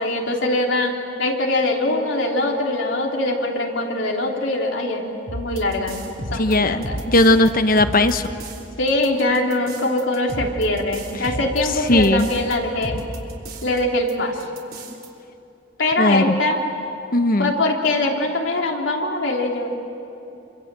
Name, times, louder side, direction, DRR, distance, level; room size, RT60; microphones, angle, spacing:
voice 1, 0.0-6.0 6.3-7.0 8.8-13.0 13.6-14.4 15.8-16.6 17.4-19.8, left 2 dB, 85° left, 0 dB, 3.4 m, -22 dB
sound 1, 5.3-7.5 7.8-8.6 8.9-12.5 12.8-13.8 14.1-14.2 14.4-15.1, right 1 dB, 55° right, 3.5 m, -32 dB
voice 2, 6.4-8.3 11.9-12.3 16.0-16.4 17.1-17.5, left 1 dB, 50° left, 9 dB, 1.2 m, -17 dB
28.5 x 25.5 x 7.7 m, 2.8 s
head